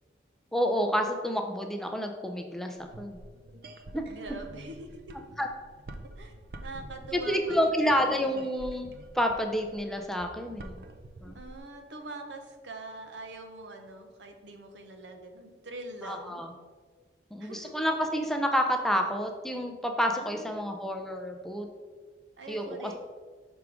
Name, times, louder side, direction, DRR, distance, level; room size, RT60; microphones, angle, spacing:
voice 1, 0.5-3.2 3.9-4.1 5.4-5.5 7.1-8.9 9.1-10.7 11.2-11.4 16.0-16.5 17.3-21.7 22.5-22.9, equal, ahead, 3 dB, 0.4 m, -29 dB
sound 1, 2.8-11.6, right 1 dB, 55° right, 0.5 m, -47 dB
voice 2, 4.1-5.2 6.2-6.3 6.6-8.2 11.3-16.4 17.4-17.7 20.1-20.8 22.4-22.9, right 2 dB, 90° right, 5 dB, 0.8 m, -43 dB
6.0 x 3.6 x 4.8 m, 1.5 s
head